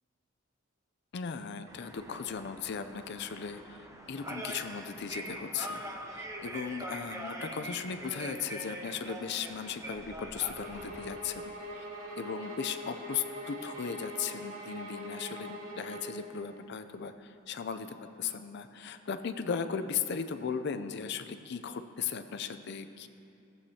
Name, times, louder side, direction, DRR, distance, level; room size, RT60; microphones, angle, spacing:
voice 1, 1.1-11.9 12.2-23.1, left 6 dB, 55° left, 10 dB, 0.5 m, -37 dB
sound 1, 1.7-11.1, right 1 dB, 15° right, 0.7 m, -43 dB
sound 2, 10.4-16.2, equal, 85° right, 2.4 m, -42 dB
18.0 x 7.9 x 2.9 m, 2.6 s
head